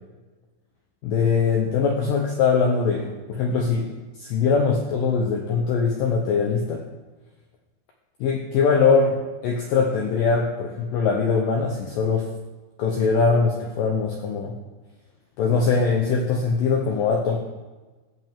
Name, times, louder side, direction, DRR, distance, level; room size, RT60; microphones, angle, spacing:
voice 1, 1.0-6.8 8.2-12.3 12.8-14.6 15.4-17.4, left 5 dB, 80° left, 1 dB, 1.9 m, -22 dB
15.0 x 8.2 x 3.6 m, 1.2 s
omnidirectional pair, 5.2 m